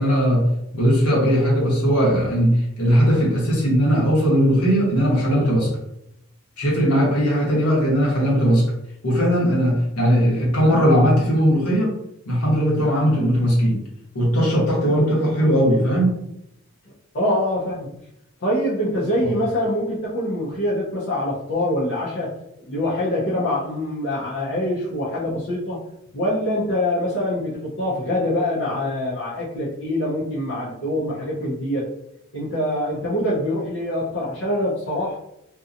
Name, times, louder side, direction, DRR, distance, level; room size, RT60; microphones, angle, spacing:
voice 1, 0.0-5.7 6.6-8.6 9.0-11.9 12.2-13.8 14.1-16.2, equal, 90° left, -5 dB, 1.1 m, -18 dB
voice 2, 17.1-17.9 18.4-22.3 22.6-25.8 26.1-31.9 32.3-35.2, left 1 dB, 55° left, -8 dB, 0.6 m, -24 dB
2.7 x 2.3 x 2.5 m, 0.82 s
head